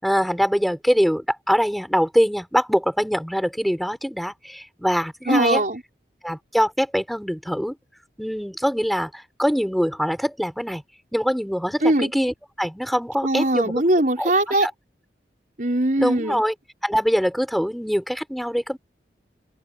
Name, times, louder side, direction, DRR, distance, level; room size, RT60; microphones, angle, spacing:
voice 1, 0.0-5.6 6.2-7.8 8.2-10.8 11.1-13.7 14.2-14.3 14.6-14.7 16.0-16.5 16.8-18.8, equal, ahead, 6.3 m, -23 dB
voice 2, 5.3-5.8 11.8-12.1 13.2-14.7 15.6-16.4, right 1 dB, 45° right, 5.3 m, -21 dB
open air
head